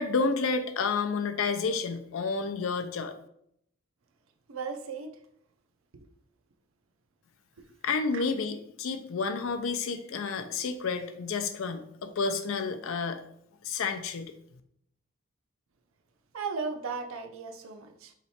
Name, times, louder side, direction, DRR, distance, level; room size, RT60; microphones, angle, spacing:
voice 1, 0.0-3.1 7.8-13.2 13.6-14.3, left 4 dB, 80° left, 8 dB, 0.5 m, -30 dB
voice 2, 4.5-5.2 5.9-6.1 7.6-7.7 8.1-8.2 16.3-18.1, right 4 dB, 85° right, 6 dB, 0.5 m, -36 dB
3.1 x 3.0 x 4.2 m, 0.71 s
head